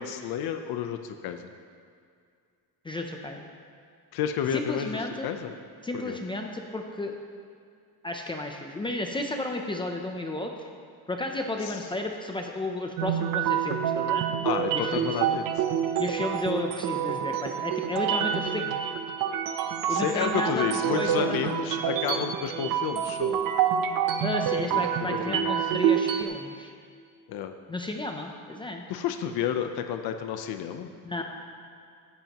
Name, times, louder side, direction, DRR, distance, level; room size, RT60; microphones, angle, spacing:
voice 1, 0.0-1.5 4.1-5.5 5.9-6.2 11.6-11.8 14.4-15.7 19.9-23.4 24.7-24.8 25.3-25.5 27.3-27.5 28.9-30.9, left 9 dB, 70° left, 7 dB, 0.8 m, -31 dB
voice 2, 2.8-3.5 4.5-5.3 5.8-7.2 8.0-10.5 11.1-14.2 14.7-15.1 16.0-18.8 19.9-21.7 24.2-26.7 27.7-28.8 31.0-31.2, left 2 dB, 15° left, 2 dB, 0.5 m, -33 dB
sound 1, 13.0-26.2, right 9 dB, 60° right, 0.8 m, -27 dB
16.5 x 13.0 x 3.0 m, 2.3 s
cardioid pair, 175°, 38 cm